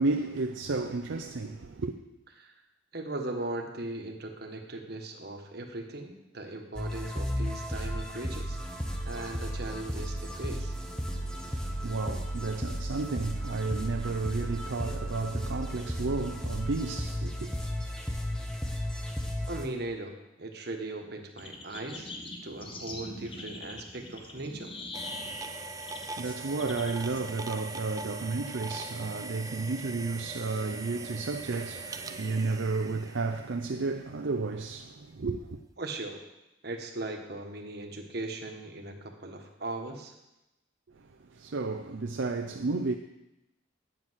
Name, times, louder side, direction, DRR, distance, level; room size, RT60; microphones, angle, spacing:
voice 1, 0.0-1.9 11.1-17.5 25.2-35.6 40.9-42.9, right 3 dB, 70° right, 0.6 m, -32 dB
voice 2, 2.9-8.6 9.1-10.7 19.5-22.1 22.4-24.7 35.8-36.2 36.6-40.1, right 2 dB, 55° right, 1.3 m, -38 dB
sound 1, 6.8-19.7, equal, 5° left, 0.9 m, -34 dB
sound 2, 21.4-28.3, left 2 dB, 25° left, 1.0 m, -43 dB
sound 3, 24.9-33.8, right 3 dB, 20° right, 0.5 m, -41 dB
9.0 x 7.7 x 6.2 m
head